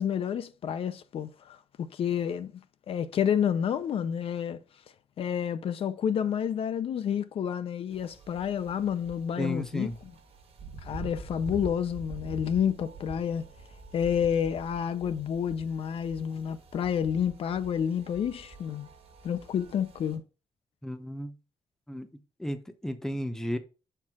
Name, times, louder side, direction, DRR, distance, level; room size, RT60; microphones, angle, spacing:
voice 1, 0.0-2.6 2.9-4.6 5.2-10.1 10.8-13.4 13.9-18.9 19.2-20.2, left 8 dB, 65° left, 0.5 m, -29 dB
sound 1, 7.9-20.2, right 2 dB, 70° right, 1.4 m, -46 dB
voice 2, 9.4-9.9 20.8-21.3 21.9-22.1 22.4-23.6, equal, 5° left, 0.7 m, -33 dB
7.2 x 4.5 x 3.7 m
wide cardioid pair, 140°, 10 cm